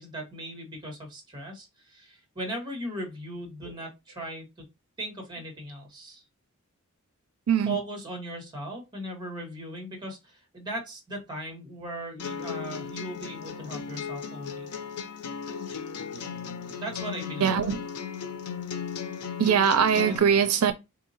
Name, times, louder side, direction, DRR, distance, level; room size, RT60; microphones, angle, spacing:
voice 1, 0.0-4.6 5.0-6.2 7.7-14.7 16.7-17.6 19.9-20.2, right 1 dB, 20° right, 1.5 m, -38 dB
voice 2, 7.5-7.8 16.1-16.6 17.4-17.8 19.4-20.7, right 7 dB, 80° right, 0.5 m, -23 dB
sound 1, 12.2-20.2, left 6 dB, 90° left, 0.6 m, -36 dB
3.9 x 2.8 x 2.7 m
head